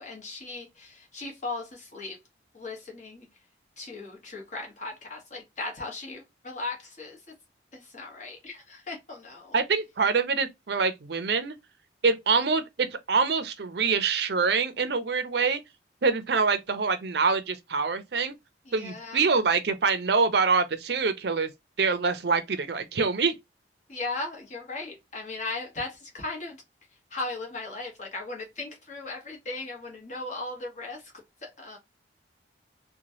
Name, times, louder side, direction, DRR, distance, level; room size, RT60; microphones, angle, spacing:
voice 1, 0.0-2.2 2.5-3.3 3.8-7.2 7.7-9.6 18.7-19.3 23.9-26.6 27.1-31.0 31.4-31.8, left 3 dB, 40° left, 1.1 m, -37 dB
voice 2, 9.5-11.5 12.0-15.6 16.0-18.3 18.7-21.5 21.8-23.4, right 4 dB, 60° right, 0.5 m, -25 dB
3.0 x 2.2 x 2.7 m
head